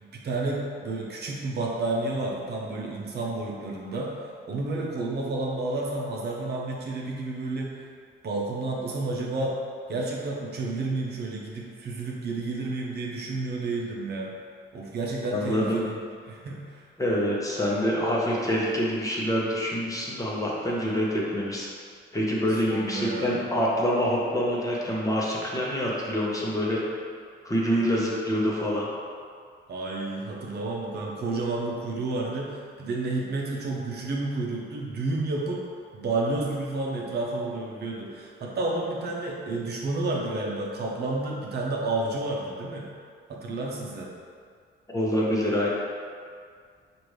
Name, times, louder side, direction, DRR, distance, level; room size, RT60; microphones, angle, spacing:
voice 1, 0.1-4.1 4.5-7.7 8.2-9.6 9.9-14.3 14.7-16.0 16.2-16.8 22.7-23.4 29.7-35.6 35.9-42.9 43.3-44.1, right 2 dB, 55° right, -2 dB, 0.7 m, -30 dB
voice 2, 15.3-15.8 17.0-21.7 22.1-26.8 27.4-28.9 44.9-45.7, equal, 15° left, -5 dB, 0.9 m, -26 dB
4.9 x 2.6 x 3.2 m, 2.1 s
cardioid pair, 90°, 20 cm